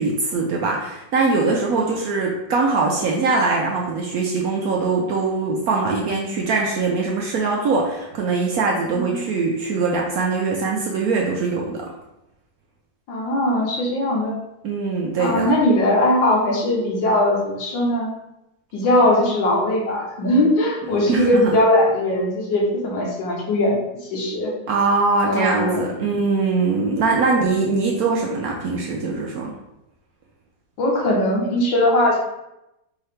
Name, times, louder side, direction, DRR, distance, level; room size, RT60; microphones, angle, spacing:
voice 1, 0.0-11.8 14.6-15.5 21.1-21.6 24.7-29.5, right 4 dB, 70° right, -1 dB, 0.9 m, -22 dB
voice 2, 13.1-14.3 15.2-18.1 18.7-23.8 24.1-24.5 25.3-25.8 30.8-32.2, left 1 dB, 85° left, -1 dB, 1.7 m, -20 dB
4.6 x 2.9 x 3.3 m, 0.91 s
omnidirectional pair, 2.0 m